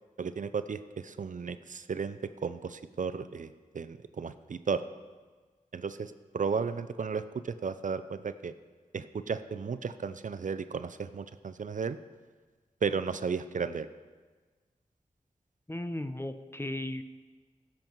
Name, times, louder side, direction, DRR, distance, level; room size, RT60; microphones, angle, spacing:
voice 1, 0.2-4.8 5.7-8.5 8.9-12.0 12.8-13.9, right 5 dB, 65° right, 12 dB, 0.5 m, -34 dB
voice 2, 15.7-17.0, left 1 dB, 15° left, 10 dB, 0.8 m, -36 dB
16.0 x 7.4 x 4.6 m, 1.4 s
cardioid pair, 40°, 14 cm